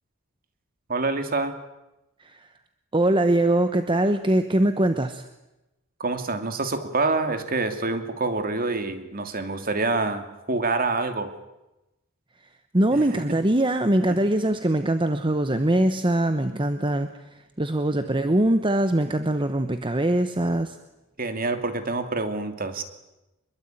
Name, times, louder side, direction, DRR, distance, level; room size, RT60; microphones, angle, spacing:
voice 1, 0.9-1.6 6.0-11.3 12.9-13.0 13.3-13.4 14.1-14.2 21.2-22.8, right 3 dB, 40° right, 8 dB, 2.7 m, -26 dB
voice 2, 2.9-5.3 12.7-17.1 17.6-20.8, right 1 dB, 20° right, 9 dB, 1.1 m, -22 dB
25.5 x 22.5 x 9.3 m, 0.97 s
head